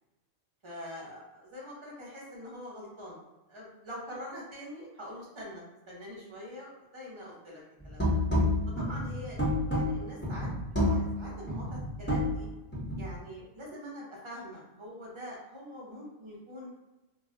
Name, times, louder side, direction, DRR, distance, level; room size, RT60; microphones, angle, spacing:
voice 1, 0.6-3.2 3.5-8.1 8.8-10.5 10.9-12.5 13.0-16.7, equal, 30° right, -5 dB, 0.6 m, -44 dB
sound 1, 7.8-13.1, left 1 dB, 10° left, 0.7 m, -29 dB
2.3 x 2.1 x 3.7 m, 1.0 s
omnidirectional pair, 1.3 m